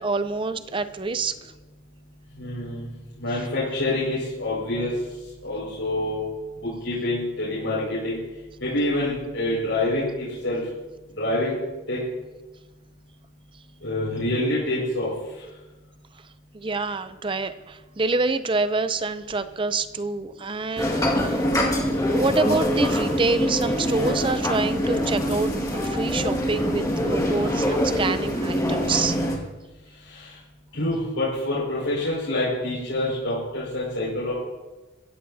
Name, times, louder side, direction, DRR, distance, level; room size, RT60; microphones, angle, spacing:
voice 1, 0.0-1.5 16.5-21.0 21.3-21.4 22.1-29.2, right 3 dB, 25° right, 12 dB, 0.5 m, -26 dB
voice 2, 2.4-2.9 3.2-4.9 5.4-6.2 6.8-8.2 8.6-10.6 11.2-11.6 11.9-12.0 13.8-15.1 30.1-30.3 30.7-34.3, left 1 dB, 65° left, -9 dB, 5.5 m, -26 dB
sound 1, 20.8-29.4, equal, 15° left, 1.8 m, -24 dB
23.0 x 14.5 x 2.8 m, 1.1 s
head